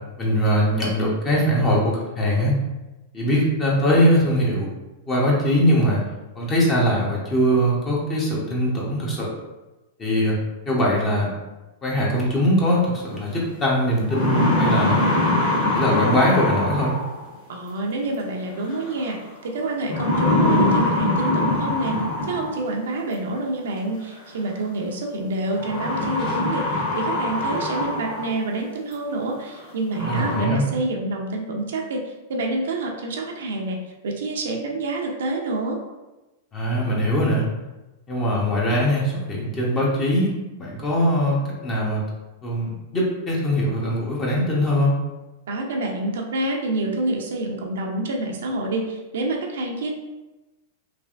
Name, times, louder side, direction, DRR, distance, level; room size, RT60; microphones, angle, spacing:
voice 1, 0.2-2.5 3.1-4.7 5.1-6.0 6.3-9.3 10.0-10.4 10.7-11.3 11.8-15.0 15.7-16.9 30.0-30.6 36.5-37.5 38.1-40.3 40.6-42.0 42.4-44.9, equal, 25° left, -4 dB, 0.8 m, -21 dB
sound 1, 13.3-13.4 13.9-17.3 18.7-19.1 19.9-22.7 23.9-24.0 25.6-28.4 28.9-29.0 29.6-29.7 29.9-30.4, left 1 dB, 50° left, 1.3 m, -23 dB
voice 2, 17.5-19.2 19.4-22.0 22.2-33.8 34.0-35.8 45.5-49.9, right 2 dB, 80° right, 1 dB, 0.5 m, -27 dB
3.2 x 2.4 x 2.4 m, 1.1 s
hypercardioid pair, 125°, 0 cm